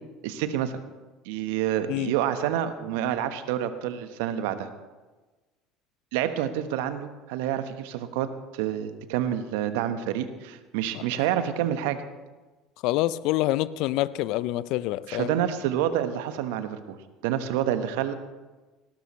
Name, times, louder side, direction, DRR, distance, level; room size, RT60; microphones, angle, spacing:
voice 1, 0.2-0.8 1.2-4.7 6.1-8.3 8.5-12.0 15.1-17.0 17.2-18.1, right 10 dB, 70° right, 9 dB, 1.3 m, -28 dB
voice 2, 12.8-15.3, left 16 dB, 65° left, 17 dB, 0.4 m, -26 dB
19.0 x 17.0 x 3.2 m, 1.2 s
hypercardioid pair, 65°, 0 cm